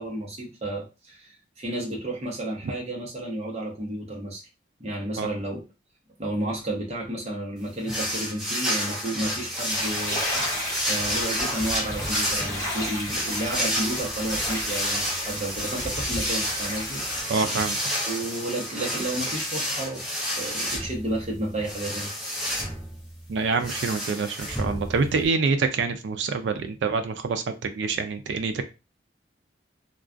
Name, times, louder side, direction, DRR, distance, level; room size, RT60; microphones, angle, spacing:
voice 1, 0.0-4.4 4.8-5.6 6.2-10.4 10.8-17.0 18.1-22.1, right 1 dB, 35° right, -2 dB, 0.7 m, -32 dB
sound 1, 7.9-25.3, equal, ahead, 0.6 m, -30 dB
sound 2, 9.7-17.2, left 1 dB, 20° left, 1.0 m, -34 dB
voice 2, 17.3-17.8 23.3-28.6, right 4 dB, 85° right, 8 dB, 0.3 m, -26 dB
2.3 x 2.2 x 2.4 m, 0.29 s
head